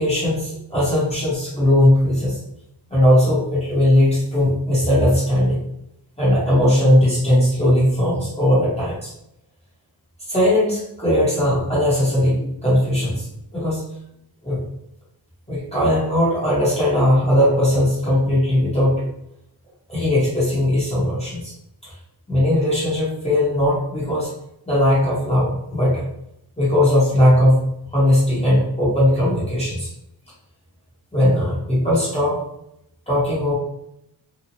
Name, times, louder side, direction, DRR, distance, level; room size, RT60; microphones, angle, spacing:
voice 1, 0.0-2.4 2.9-5.6 6.2-9.1 10.3-13.3 13.5-13.8 14.4-14.6 15.5-19.0 19.9-21.5 21.8-21.9 22.3-24.3 24.7-26.0 26.6-27.6 27.9-29.9 31.1-32.4 33.1-33.6, left 1 dB, 15° left, -9 dB, 0.8 m, -18 dB
2.9 x 2.0 x 2.6 m, 0.80 s
wide cardioid pair, 155°, 41 cm